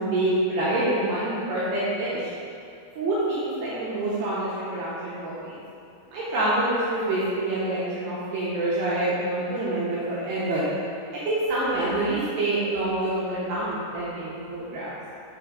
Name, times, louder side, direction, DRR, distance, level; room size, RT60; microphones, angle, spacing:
voice 1, 0.0-2.3 3.0-5.6 6.1-10.6 11.1-14.9, right 1 dB, 80° right, -9 dB, 2.4 m, -26 dB
7.5 x 2.9 x 4.8 m, 2.6 s
omnidirectional pair, 5.8 m